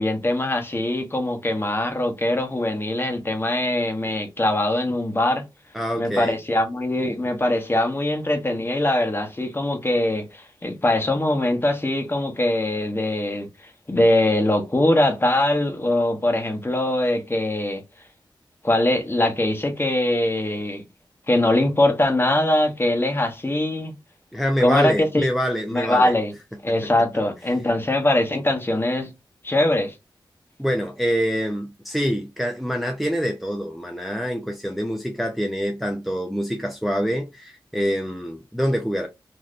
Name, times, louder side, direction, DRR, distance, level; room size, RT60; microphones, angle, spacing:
voice 1, 0.0-5.4 6.0-17.8 18.6-20.8 21.3-23.9 24.6-25.3 25.7-26.3 26.6-29.1 29.4-29.9, left 1 dB, 25° left, 0.9 m, -22 dB
voice 2, 5.7-6.4 24.3-26.1 26.8-26.9 30.6-39.1, equal, ahead, 0.6 m, -25 dB
3.2 x 2.7 x 2.4 m
wide cardioid pair, 65°, 9 cm